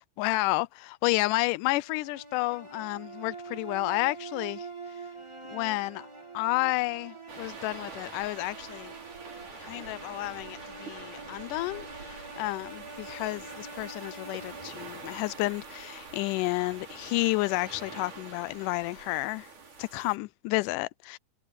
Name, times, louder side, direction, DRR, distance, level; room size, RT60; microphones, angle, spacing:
voice 1, 0.2-4.7 5.5-6.1 6.3-9.0 9.6-19.5 19.8-21.2, left 21 dB, 85° left, 2.1 m, -31 dB
sound 1, 1.8-15.9, right 3 dB, 15° right, 0.9 m, -45 dB
sound 2, 7.3-20.2, right 4 dB, 75° right, 7.2 m, -45 dB
omnidirectional pair, 3.6 m